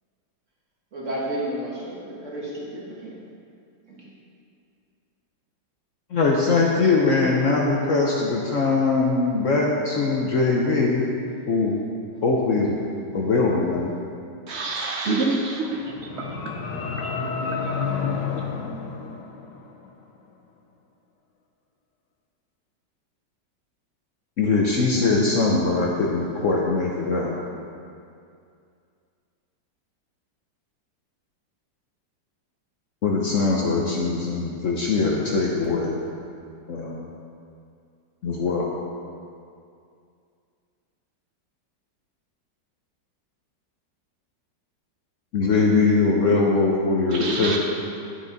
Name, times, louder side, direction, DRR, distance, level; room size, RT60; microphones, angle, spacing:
voice 1, 0.9-3.2 3.9-4.1, right 1 dB, 45° right, -6 dB, 1.9 m, -32 dB
voice 2, 6.1-11.2 11.5-11.8 12.2-12.8 13.1-13.9 24.4-27.4 33.0-36.0 36.7-37.0 38.2-38.7 45.3-47.6, left 3 dB, 60° left, -2 dB, 0.9 m, -21 dB
voice 3, 14.5-15.8 16.1-16.5 17.0-17.1 47.1-47.6, right 3 dB, 85° right, 0 dB, 0.5 m, -26 dB
sound 1, 15.7-19.9, left 5 dB, 80° left, 1.4 m, -30 dB
9.7 x 6.3 x 4.0 m, 2.4 s
omnidirectional pair, 1.9 m